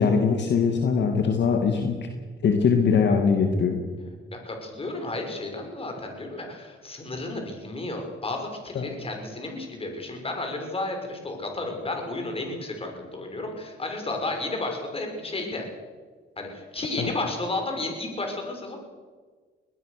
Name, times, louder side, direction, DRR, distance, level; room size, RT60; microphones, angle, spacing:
voice 1, 0.0-2.0 2.4-3.8 8.7-8.9 17.0-17.1, left 5 dB, 60° left, 4 dB, 2.3 m, -22 dB
voice 2, 4.3-15.7 16.4-18.8, left 2 dB, 30° left, 3 dB, 6.3 m, -32 dB
21.5 x 18.0 x 6.8 m, 1.5 s
cardioid pair, 90°, 20 cm